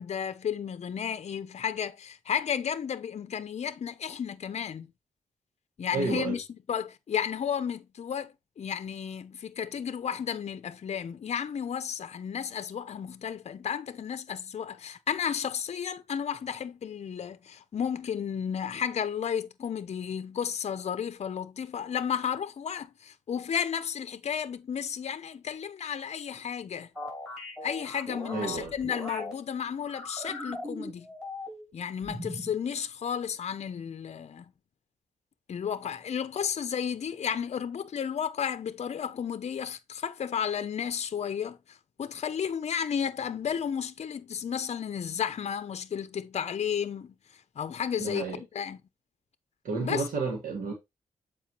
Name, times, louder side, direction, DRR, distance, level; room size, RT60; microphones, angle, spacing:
voice 1, 0.0-4.9 5.8-26.9 27.6-31.1 31.7-34.4 35.5-47.1 47.6-48.8 49.8-50.0, left 8 dB, 50° left, 0.6 m, -33 dB
voice 2, 5.9-6.4 28.3-28.7 48.0-48.4 49.6-50.7, right 4 dB, 90° right, 1.6 m, -31 dB
sound 1, 26.9-29.3 29.8-31.7 32.0-32.6, left 1 dB, 5° right, 4.3 m, -39 dB
7.3 x 4.6 x 2.9 m
wide cardioid pair, 105°, 14 cm